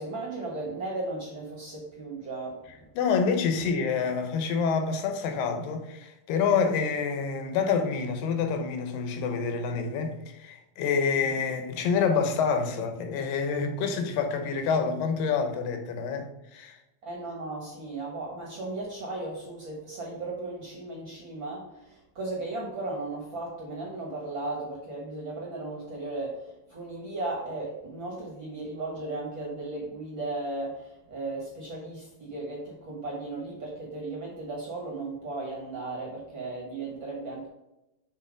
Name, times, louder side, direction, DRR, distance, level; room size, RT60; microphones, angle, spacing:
voice 1, 0.0-2.6 11.2-11.3 17.0-37.5, right 2 dB, 55° right, 1.4 m, -36 dB
voice 2, 3.0-16.8, left 5 dB, 90° left, 2.6 m, -27 dB
6.8 x 4.0 x 4.9 m
omnidirectional pair, 3.9 m